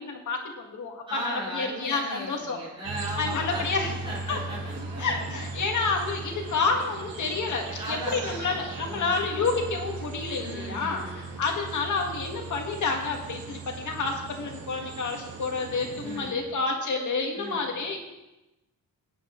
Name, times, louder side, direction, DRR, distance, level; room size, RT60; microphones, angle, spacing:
voice 1, 0.0-2.6 3.2-3.9 4.3-4.4 5.0-18.0, left 4 dB, 60° left, 1 dB, 2.0 m, -29 dB
voice 2, 1.1-5.3 7.8-8.5 8.9-9.3 10.4-11.4 16.0-16.5 17.3-17.7, right 1 dB, 15° right, -9 dB, 4.7 m, -37 dB
sound 1, 2.8-16.3, right 3 dB, 90° right, 1.8 m, -38 dB
18.5 x 9.6 x 3.2 m, 0.99 s
wide cardioid pair, 170°, 34 cm